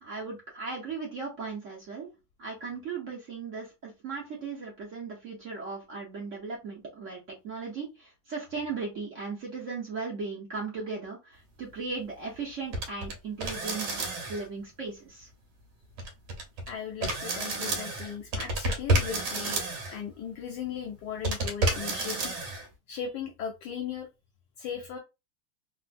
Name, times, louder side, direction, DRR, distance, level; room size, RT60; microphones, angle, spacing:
voice 1, 0.0-2.1 2.4-15.3, right 4 dB, 55° right, -2 dB, 0.9 m, -37 dB
sound 1, 12.7-13.1 13.4-14.5 16.0-16.7 17.0-20.0 21.2-22.7, right 2 dB, 80° right, 1.6 m, -30 dB
voice 2, 16.7-22.3 22.9-24.1 24.6-25.0, left 7 dB, 75° left, 3 dB, 1.1 m, -37 dB
3.4 x 2.4 x 2.4 m, 0.25 s
omnidirectional pair, 2.3 m